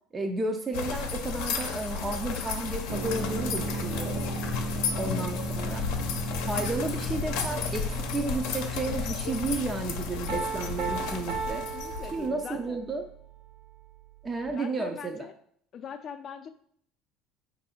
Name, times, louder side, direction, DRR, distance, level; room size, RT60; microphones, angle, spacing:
voice 1, 0.1-4.3 4.9-5.8 6.4-11.6 12.1-13.0 14.2-15.3, right 3 dB, 20° right, 3 dB, 0.5 m, -32 dB
sound 1, 0.7-12.3, left 6 dB, 75° left, 0.6 m, -33 dB
sound 2, 2.9-14.5, right 2 dB, 85° right, 1.1 m, -37 dB
Piano, 10.3-12.9, right 6 dB, 70° right, 0.8 m, -35 dB
voice 2, 11.5-12.8 14.5-15.3 15.7-16.5, left 7 dB, 40° left, 8 dB, 0.5 m, -42 dB
4.5 x 2.6 x 4.2 m, 0.63 s
cardioid pair, 120°, 0 cm